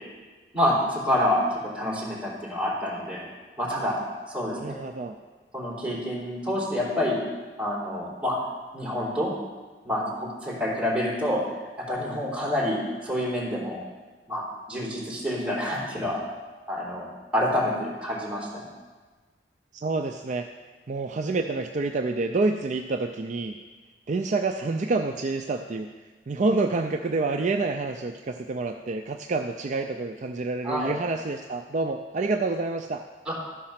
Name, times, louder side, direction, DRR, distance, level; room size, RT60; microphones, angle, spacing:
voice 1, 0.5-1.5 1.7-3.3 3.6-3.9 4.3-4.7 5.5-7.2 7.6-8.3 8.7-9.3 9.8-11.4 11.9-12.8 13.0-13.8 14.3-16.2 16.7-17.0 17.3-18.6 30.6-30.9 33.3-33.4, left 1 dB, 5° right, -6 dB, 3.4 m, -27 dB
voice 2, 4.5-5.2 19.7-20.5 20.9-23.6 24.1-25.9 26.3-33.0, right 3 dB, 45° right, 4 dB, 0.4 m, -28 dB
13.0 x 5.3 x 5.8 m, 1.3 s
head